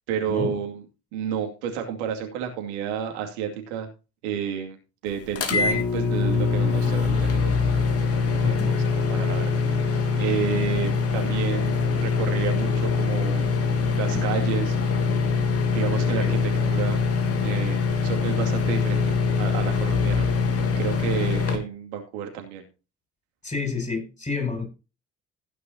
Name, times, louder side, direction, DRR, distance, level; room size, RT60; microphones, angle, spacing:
voice 1, 0.1-0.8 1.1-3.9 4.2-4.8 5.0-7.6 8.2-13.5 14.0-14.8 15.7-17.0 17.4-20.3 20.8-22.6, right 8 dB, 70° right, 2.5 m, -31 dB
sound 1, 5.3-21.6, left 5 dB, 45° left, 3.2 m, -23 dB
voice 2, 8.4-8.9 15.9-16.4 23.4-24.7, left 4 dB, 20° left, 7.8 m, -30 dB
15.5 x 9.4 x 2.8 m
figure-of-eight pair, 50°, 34 cm